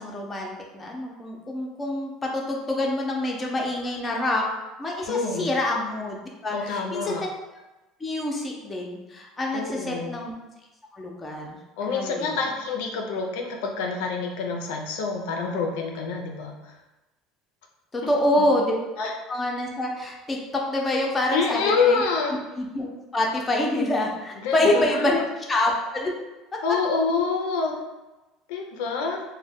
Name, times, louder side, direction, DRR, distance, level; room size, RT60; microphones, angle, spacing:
voice 1, 0.0-4.5 4.8-7.2 8.0-10.3 10.9-12.4 17.9-22.0 22.6-26.1, left 1 dB, 20° left, -1 dB, 0.6 m, -26 dB
voice 2, 5.1-5.5 6.5-7.2 9.5-10.2 11.8-16.5 18.4-18.5 19.0-19.1 21.3-22.4 24.4-25.2 26.6-27.8 28.5-29.2, left 4 dB, 85° left, 2 dB, 0.4 m, -27 dB
2.6 x 2.1 x 3.4 m, 1.1 s
supercardioid pair, 115°, 0 cm